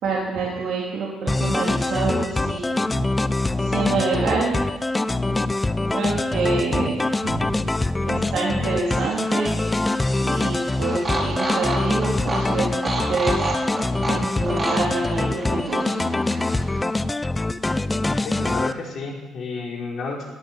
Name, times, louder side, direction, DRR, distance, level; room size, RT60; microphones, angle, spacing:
voice 1, 0.0-3.1 3.6-4.6 5.6-7.6 8.0-9.5 10.2-13.5 13.8-16.1, right 3 dB, 65° right, -4 dB, 3.8 m, -27 dB
sound 1, 1.3-18.7, left 2 dB, 20° left, 0.7 m, -24 dB
sound 2, 8.7-16.8, right 2 dB, 25° right, 5.4 m, -31 dB
voice 2, 18.2-20.2, left 3 dB, 55° left, -1 dB, 4.8 m, -31 dB
18.0 x 7.6 x 9.4 m, 1.2 s
supercardioid pair, 70°, 0 cm